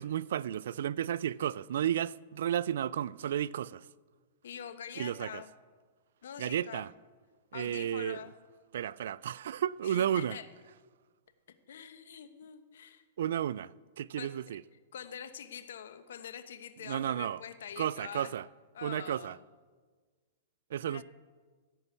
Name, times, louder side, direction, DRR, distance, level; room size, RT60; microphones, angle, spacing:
voice 1, 0.0-3.9 5.0-5.4 6.4-6.9 7.5-8.2 8.7-10.4 13.2-14.6 16.8-17.4 17.8-18.5 18.8-19.4 20.7-21.0, right 10 dB, 75° right, 0.3 m, -33 dB
voice 2, 4.4-5.5 6.2-6.9 7.5-8.4 9.8-10.5 11.7-13.0 14.2-14.3 14.9-18.3 18.7-19.4 20.9-21.0, left 8 dB, 75° left, 1.1 m, -45 dB
16.0 x 5.6 x 8.2 m
hypercardioid pair, 130°, 0 cm